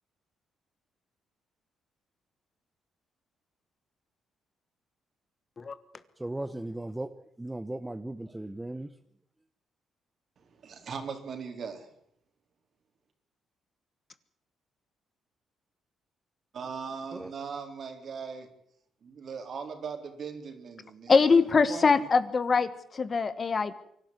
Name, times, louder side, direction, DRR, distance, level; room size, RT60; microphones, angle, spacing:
voice 1, 6.2-7.1 7.4-8.9 17.1-17.3, right 1 dB, 10° right, 10 dB, 0.9 m, -36 dB
voice 2, 10.4-11.9 16.5-18.5 19.0-21.9, right 5 dB, 55° right, 6 dB, 3.8 m, -39 dB
voice 3, 21.1-23.7, left 4 dB, 35° left, 14 dB, 1.3 m, -23 dB
24.0 x 12.0 x 9.5 m, 0.71 s
cardioid pair, 100°, 0 cm